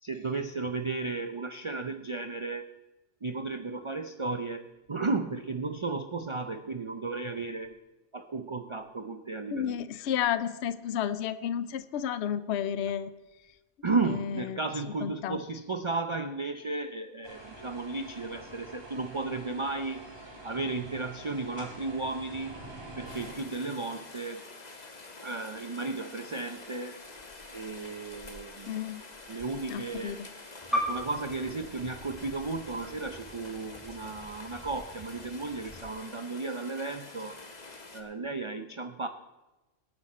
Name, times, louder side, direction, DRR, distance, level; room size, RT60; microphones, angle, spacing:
voice 1, 0.0-2.7 3.2-7.8 8.1-9.8 13.8-20.1 20.4-22.6 23.0-24.5 25.2-27.0 27.5-28.9 29.3-30.2 30.7-37.3 37.9-39.1, right 3 dB, 35° right, 7 dB, 0.5 m, -34 dB
voice 2, 9.5-13.1 14.5-14.6 15.0-15.4 28.7-29.0 29.7-30.2, left 9 dB, 65° left, 13 dB, 0.9 m, -31 dB
sound 1, 17.2-23.3, right 1 dB, 20° right, 3.1 m, -46 dB
Rain, 23.1-38.0, left 3 dB, 35° left, 1.4 m, -47 dB
sound 2, 30.6-35.8, equal, ahead, 2.7 m, -38 dB
20.5 x 8.9 x 4.3 m, 1.1 s
omnidirectional pair, 1.3 m